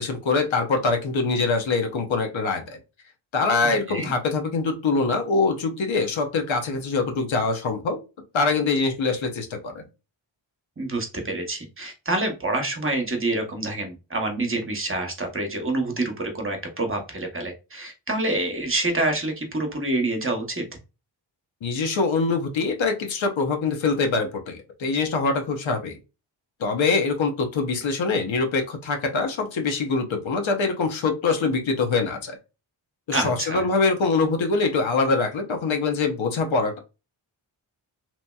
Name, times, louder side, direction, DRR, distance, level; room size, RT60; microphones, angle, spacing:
voice 1, 0.0-2.8 3.3-8.0 8.3-9.8 21.6-26.0 26.6-32.4 33.1-36.8, left 4 dB, 75° left, 4 dB, 0.8 m, -24 dB
voice 2, 3.6-4.1 10.8-20.6 33.1-33.7, right 2 dB, 25° right, 4 dB, 0.8 m, -27 dB
2.9 x 2.7 x 2.2 m, 0.30 s
cardioid pair, 50°, 47 cm